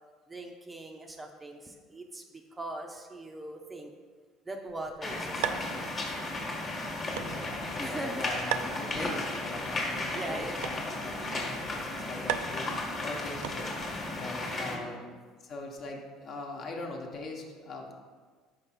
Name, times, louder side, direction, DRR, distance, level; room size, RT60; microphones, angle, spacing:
voice 1, 0.3-3.9 4.5-5.9 6.2-6.3 7.8-8.4 8.9-9.1 10.1-10.6 11.0-11.4 14.5-15.1, right 1 dB, 15° right, 3 dB, 0.6 m, -41 dB
sound 1, 4.7-14.0, right 9 dB, 80° right, 0.3 m, -40 dB
sound 2, 5.0-14.8, left 2 dB, 30° left, 1.3 m, -35 dB
voice 2, 6.8-13.7 14.1-17.9, left 2 dB, 50° left, 1 dB, 1.0 m, -41 dB
5.1 x 5.1 x 4.3 m, 1.5 s
supercardioid pair, 105°, 0 cm